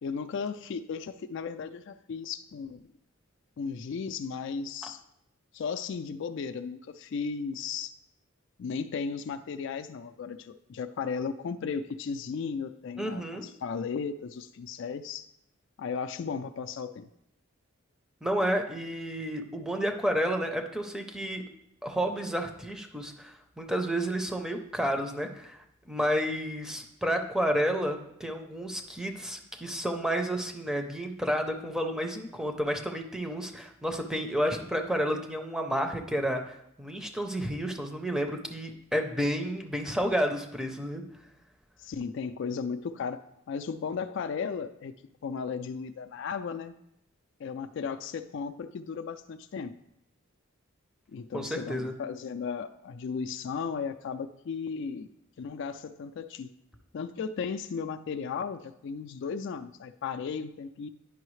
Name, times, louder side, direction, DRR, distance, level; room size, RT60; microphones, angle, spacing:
voice 1, 0.0-2.8 3.6-5.0 5.5-7.9 8.6-15.3 15.8-17.1 41.8-43.2 43.5-44.9 45.2-46.8 47.4-49.8 51.1-55.1 55.4-56.5 56.9-60.9, left 5 dB, 60° left, 8 dB, 0.3 m, -35 dB
voice 2, 13.0-13.5 18.2-21.4 21.8-25.6 25.9-41.0 51.3-51.9, equal, 5° right, 4 dB, 0.6 m, -31 dB
9.7 x 5.5 x 3.1 m, 0.80 s
head